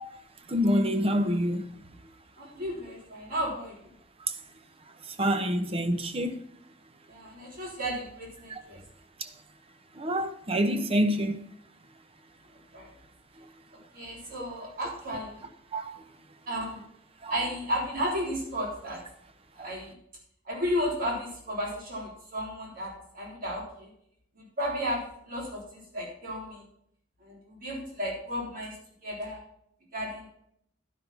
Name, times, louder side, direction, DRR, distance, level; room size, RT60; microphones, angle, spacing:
voice 1, 0.5-1.8 5.2-6.4 8.5-8.6 9.2-9.3 9.9-11.4 15.7-16.0 17.2-17.3 19.6-19.7, equal, 30° right, 0.8 m, -27 dB
voice 2, 2.4-3.9 7.1-8.8 12.7-12.9 13.9-15.5 16.5-16.9 17.3-19.0 19.5-20.0 20.5-23.9 24.4-26.7 27.2-28.8 29.0-29.4 29.9-30.3, equal, 50° right, 3.5 m, -33 dB
11.5 x 5.7 x 5.7 m
head